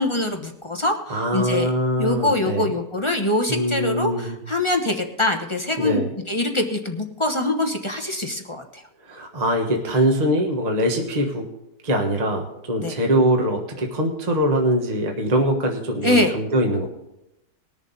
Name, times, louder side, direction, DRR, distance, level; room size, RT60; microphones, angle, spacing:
voice 1, 0.0-1.7 2.0-8.8 12.8-12.9 16.0-16.3, left 2 dB, 20° left, 4 dB, 0.8 m, -24 dB
voice 2, 1.1-2.7 3.5-4.4 5.8-6.1 9.0-11.5 11.8-16.9, right 1 dB, 25° right, 2 dB, 1.3 m, -22 dB
20.5 x 7.1 x 4.1 m, 0.86 s
omnidirectional pair, 1.8 m